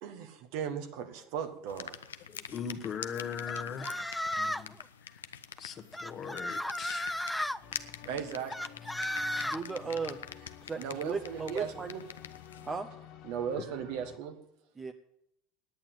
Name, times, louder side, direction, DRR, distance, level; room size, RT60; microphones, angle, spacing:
voice 1, 0.0-2.0 8.0-8.5 10.8-12.0 13.2-14.3, right 7 dB, 65° right, 8 dB, 1.4 m, -37 dB
sound 1, 1.7-12.8, left 8 dB, 90° left, 0.5 m, -46 dB
voice 2, 2.3-4.1 4.4-4.8 5.6-7.2, left 7 dB, 40° left, 7 dB, 1.1 m, -39 dB
sound 2, 3.5-4.7 5.9-7.6 8.5-9.6, left 1 dB, 5° left, 0.4 m, -34 dB
sound 3, 7.6-14.2, left 10 dB, 60° left, 0.9 m, -51 dB
voice 3, 9.4-10.2 10.6-11.9 12.6-12.9 14.8-14.9, right 5 dB, 25° right, 6 dB, 0.8 m, -36 dB
9.5 x 8.8 x 9.1 m, 0.79 s
hypercardioid pair, 80°, 0 cm